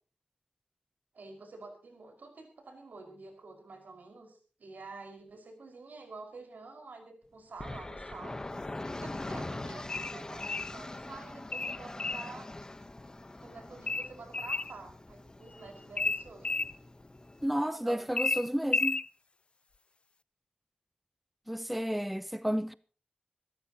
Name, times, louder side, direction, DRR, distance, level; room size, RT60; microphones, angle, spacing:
voice 1, 1.1-8.4 9.0-12.5 13.4-16.6 17.6-18.1, right 3 dB, 85° right, 5.4 m, -48 dB
sound 1, 7.6-17.5, left 2 dB, 25° left, 1.0 m, -43 dB
sound 2, 9.9-10.7 11.5-12.3 13.9-14.7 16.0-16.7 18.2-19.1, left 3 dB, 40° left, 0.6 m, -31 dB
voice 2, 17.4-19.0 21.5-22.7, equal, 5° right, 0.7 m, -31 dB
26.0 x 13.5 x 3.0 m
wide cardioid pair, 115°, 3 cm